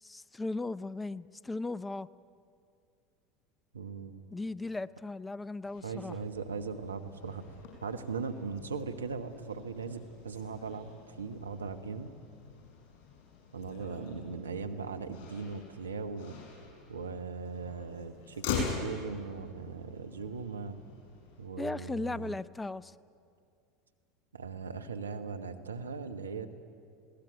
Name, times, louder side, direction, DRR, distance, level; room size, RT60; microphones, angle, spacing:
voice 1, 0.0-2.1 4.3-6.2 21.6-22.9, left 2 dB, 15° left, 19 dB, 0.5 m, -37 dB
voice 2, 3.7-4.2 5.8-7.4 7.8-12.1 13.5-16.4 16.9-20.8 21.4-22.4 24.3-26.5, right 5 dB, 90° right, 8 dB, 1.2 m, -39 dB
Motor vehicle (road), 5.6-21.5, left 5 dB, 60° left, 6.5 m, -44 dB
20.5 x 17.5 x 9.5 m, 2.4 s
hypercardioid pair, 80°, 0 cm